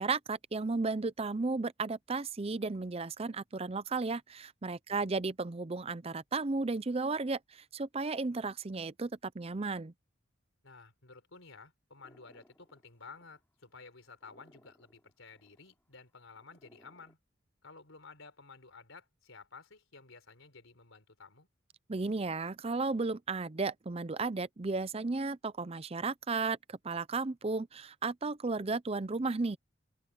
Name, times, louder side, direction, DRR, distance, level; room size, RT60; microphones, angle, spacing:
voice 1, 0.0-9.9 21.9-29.6, right 3 dB, 30° right, 0.5 m, -34 dB
voice 2, 10.6-17.2 17.6-21.5, left 4 dB, 90° left, 4.2 m, -53 dB
sound 1, 12.0-17.1, equal, 10° left, 3.4 m, -65 dB
open air
head